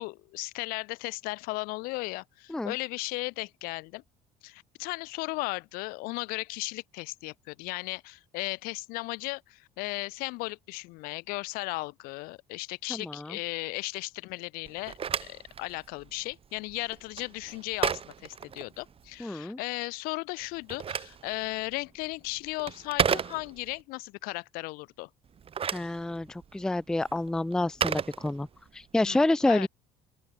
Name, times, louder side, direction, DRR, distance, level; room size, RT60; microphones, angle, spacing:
voice 1, 0.0-4.0 4.4-25.1 29.0-29.7, left 24 dB, 75° left, 1.7 m, -36 dB
voice 2, 12.9-13.4 19.2-19.6 25.7-28.5 28.7-29.7, left 2 dB, 5° left, 0.4 m, -28 dB
Telephone, 14.7-19.2 20.4-23.8 25.3-28.8, right 7 dB, 40° right, 3.0 m, -34 dB
open air
supercardioid pair, 90°, 15 cm